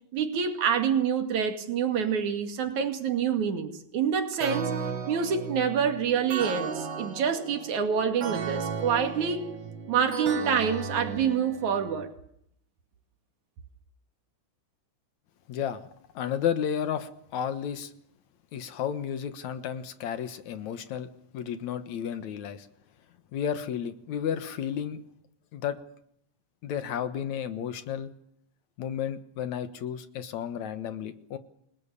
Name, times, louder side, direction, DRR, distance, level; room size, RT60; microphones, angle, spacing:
voice 1, 0.1-4.7 5.1-9.4 9.9-12.1, right 7 dB, 75° right, 6 dB, 3.7 m, -27 dB
sound 1, 4.4-12.0, right 5 dB, 45° right, 2.1 m, -35 dB
voice 2, 15.5-15.9 16.1-17.9 18.5-22.7 23.3-25.0 25.5-25.8 26.6-28.1 28.8-31.4, left 8 dB, 70° left, 11 dB, 2.6 m, -32 dB
29.0 x 19.5 x 7.1 m, 0.69 s
omnidirectional pair, 3.4 m